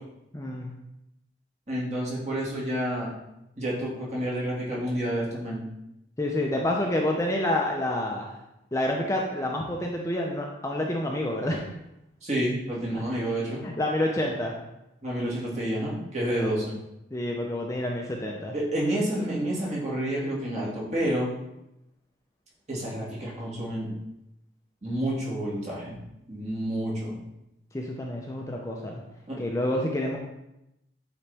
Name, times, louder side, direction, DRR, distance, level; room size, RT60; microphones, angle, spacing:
voice 1, 0.3-0.7 6.2-8.3 8.7-11.6 12.9-13.0 13.6-14.5 16.3-16.5 17.1-18.5 27.7-29.0 29.4-30.2, left 1 dB, 15° left, 0 dB, 0.6 m, -28 dB
voice 2, 1.7-3.1 3.6-5.6 12.2-13.6 15.0-16.7 18.5-21.3 22.7-23.9 24.8-26.0 26.3-27.2 29.3-29.4, right 1 dB, 35° right, -5 dB, 2.1 m, -29 dB
8.6 x 4.0 x 3.4 m, 0.87 s
head